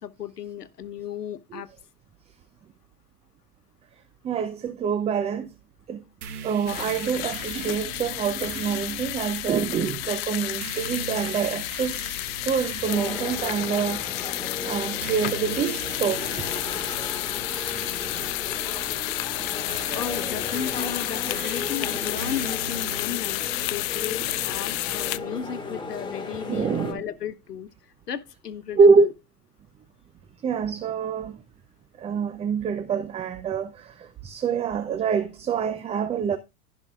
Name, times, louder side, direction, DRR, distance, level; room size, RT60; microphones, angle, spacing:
voice 1, 0.0-1.7 16.2-16.3 19.9-27.7 28.1-29.1, left 9 dB, 90° left, 1.0 m, -35 dB
voice 2, 4.2-5.5 5.9-6.0 6.4-12.2 12.4-14.0 14.6-16.2 26.5-27.0 28.7-29.1 30.4-31.4 32.0-36.4, right 6 dB, 15° right, 0.5 m, -25 dB
sound 1, 6.2-23.8, right 5 dB, 70° right, 1.9 m, -42 dB
sound 2, 6.7-25.2, left 19 dB, 40° left, 0.5 m, -31 dB
sound 3, 12.9-26.9, left 3 dB, 10° left, 2.2 m, -36 dB
16.0 x 5.5 x 2.4 m
hypercardioid pair, 100°, 46 cm